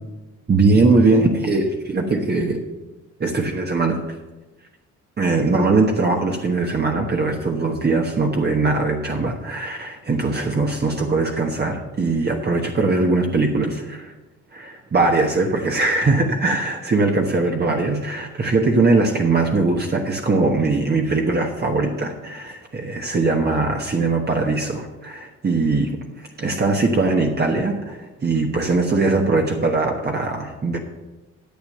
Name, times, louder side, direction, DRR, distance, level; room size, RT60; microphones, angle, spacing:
voice 1, 0.5-2.6 3.2-4.2 5.2-14.1 14.5-30.8, right 3 dB, 35° right, 1 dB, 1.2 m, -21 dB
10.5 x 7.5 x 6.6 m, 1.1 s
cardioid pair, 90°, 30 cm